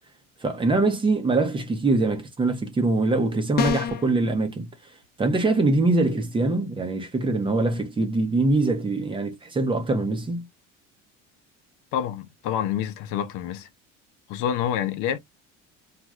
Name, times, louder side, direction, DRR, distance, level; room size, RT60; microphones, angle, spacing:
voice 1, 0.4-4.7 5.2-10.4, right 2 dB, 15° right, 0.6 m, -23 dB
sound 1, 3.6-4.1, left 7 dB, 30° left, 0.4 m, -25 dB
voice 2, 11.9-13.7 14.3-15.2, left 9 dB, 75° left, 0.6 m, -27 dB
3.0 x 2.4 x 2.4 m
cardioid pair, 150°, 31 cm